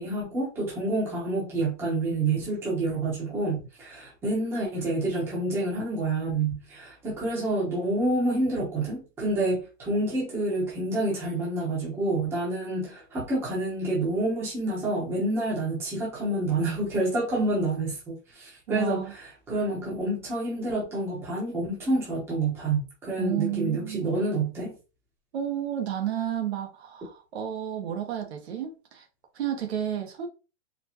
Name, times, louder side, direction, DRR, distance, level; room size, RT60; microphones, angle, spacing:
voice 1, 0.0-24.7, right 2 dB, 5° right, 0.9 m, -28 dB
voice 2, 18.7-19.1 23.2-24.2 25.3-29.1 29.3-30.3, right 10 dB, 60° right, 1.0 m, -31 dB
4.3 x 2.3 x 2.8 m
supercardioid pair, 180°, 36 cm